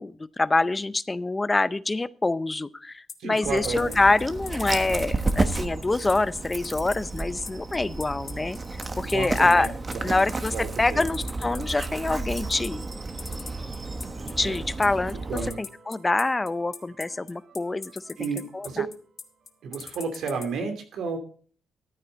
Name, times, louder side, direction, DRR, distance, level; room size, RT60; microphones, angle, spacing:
voice 1, 0.0-8.6 9.0-9.7 10.0-12.8 14.4-15.2 15.6-18.3 18.5-18.8, left 2 dB, 20° left, 17 dB, 0.5 m, -25 dB
sound 1, 3.1-20.5, left 5 dB, 40° left, 1.2 m, -40 dB
voice 2, 3.2-3.9 4.9-5.0 9.1-9.7 10.1-10.2 10.5-11.1 14.4-14.6 15.3-15.6 18.2-18.9 19.6-21.2, right 5 dB, 70° right, 5 dB, 2.7 m, -32 dB
Dog, 3.4-15.5, right 3 dB, 25° right, 1.2 m, -32 dB
sound 2, 8.2-19.9, right 4 dB, 50° right, 5.1 m, -55 dB
14.0 x 8.8 x 3.9 m, 0.43 s
cardioid pair, 90°, 0 cm